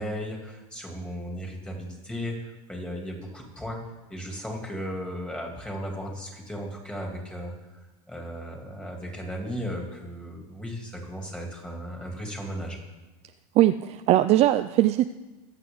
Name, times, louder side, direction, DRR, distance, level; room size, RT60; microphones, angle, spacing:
voice 1, 0.0-3.8 4.1-7.5 8.1-12.8, equal, 5° left, 0 dB, 3.0 m, -35 dB
voice 2, 13.6-15.1, right 14 dB, 35° right, 10 dB, 0.4 m, -20 dB
22.5 x 8.2 x 4.0 m, 1.1 s
supercardioid pair, 130°, 18 cm